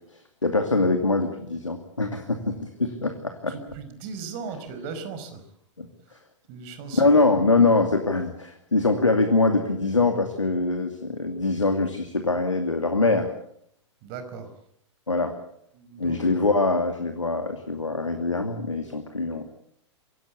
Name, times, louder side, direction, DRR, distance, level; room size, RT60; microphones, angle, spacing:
voice 1, 0.4-3.5 5.8-5.9 6.9-13.3 15.1-15.4 16.0-19.4, left 3 dB, 85° left, 6 dB, 2.6 m, -23 dB
voice 2, 3.5-5.4 6.5-7.0 14.0-14.5 15.7-16.2, right 5 dB, 40° right, 10 dB, 5.0 m, -37 dB
25.0 x 17.0 x 8.4 m, 0.70 s
figure-of-eight pair, 105°, 16 cm